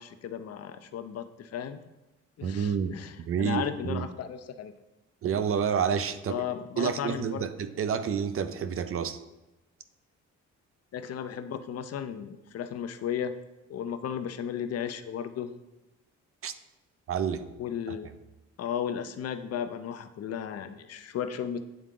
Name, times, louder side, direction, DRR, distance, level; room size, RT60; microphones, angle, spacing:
voice 1, 0.0-1.9 2.4-4.7 6.3-7.5 10.9-13.3 13.7-15.5 17.6-18.1 18.6-21.6, left 8 dB, 55° left, 10 dB, 0.6 m, -35 dB
voice 2, 2.4-2.9 3.2-4.1 5.2-6.4 6.8-9.2 16.4-16.5 17.1-17.5 17.9-18.0, right 7 dB, 45° right, 11 dB, 0.5 m, -29 dB
9.1 x 3.6 x 3.7 m, 1.0 s
cardioid pair, 90°, 30 cm